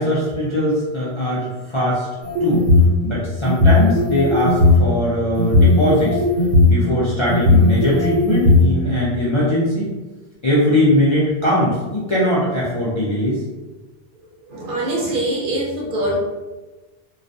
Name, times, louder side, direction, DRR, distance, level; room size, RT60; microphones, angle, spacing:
voice 1, 0.0-2.1 2.4-2.6 3.0-6.2 6.6-9.9 10.4-13.4, left 1 dB, 45° left, -8 dB, 0.4 m, -20 dB
sound 1, 2.2-2.9 3.4-4.8 5.4-6.7 7.3-8.6, left 2 dB, 85° right, 0.9 m, -15 dB
voice 2, 14.4-16.2, right 1 dB, 60° right, -3 dB, 0.6 m, -23 dB
2.3 x 2.1 x 2.5 m, 1.2 s
omnidirectional pair, 1.1 m